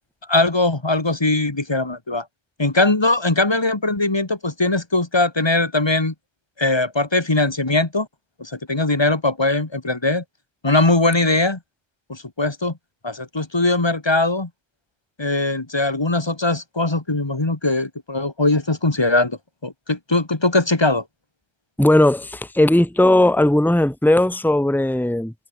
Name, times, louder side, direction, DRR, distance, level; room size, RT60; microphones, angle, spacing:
voice 1, 0.3-2.2 2.6-6.1 6.6-8.1 8.4-10.2 10.6-11.6 12.1-12.7 13.0-14.5 15.2-21.0, left 2 dB, 25° left, 1.7 m, -20 dB
voice 2, 21.8-25.3, left 1 dB, ahead, 2.0 m, -17 dB
omnidirectional pair, 1.1 m